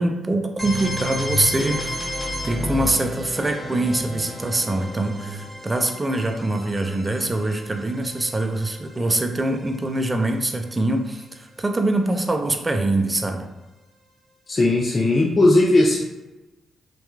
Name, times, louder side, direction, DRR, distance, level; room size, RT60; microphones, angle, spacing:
voice 1, 0.0-2.0 2.4-13.5, right 2 dB, 25° right, 5 dB, 0.4 m, -24 dB
sound 1, 0.6-10.3, left 1 dB, 10° right, 1.3 m, -32 dB
voice 2, 14.5-16.0, left 2 dB, 40° left, -3 dB, 0.4 m, -17 dB
2.8 x 2.3 x 2.4 m, 1.1 s
supercardioid pair, 50°, 0 cm